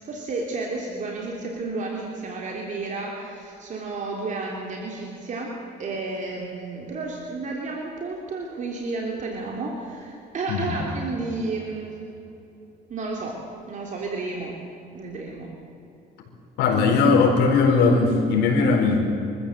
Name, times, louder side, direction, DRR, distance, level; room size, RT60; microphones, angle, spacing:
voice 1, 0.0-12.0 12.9-13.4 13.7-14.5 14.9-15.5, right 3 dB, 50° right, -1 dB, 3.3 m, -32 dB
voice 2, 10.5-10.8 16.6-19.0, left 4 dB, 90° left, 1 dB, 4.4 m, -19 dB
25.0 x 14.5 x 7.9 m, 2.9 s
cardioid pair, 110°, 17 cm